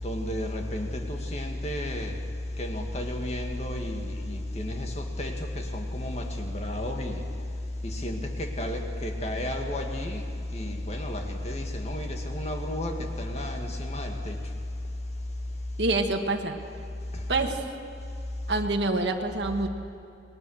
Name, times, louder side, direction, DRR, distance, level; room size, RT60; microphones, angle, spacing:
voice 1, 0.0-2.2 2.6-7.2 7.8-10.2 10.5-14.4 17.1-17.2, left 1 dB, 35° left, 2.1 m, -32 dB
voice 2, 15.8-16.6 17.3-17.6 18.5-19.7, right 2 dB, 75° right, 1.8 m, -26 dB
28.0 x 21.0 x 6.5 m
head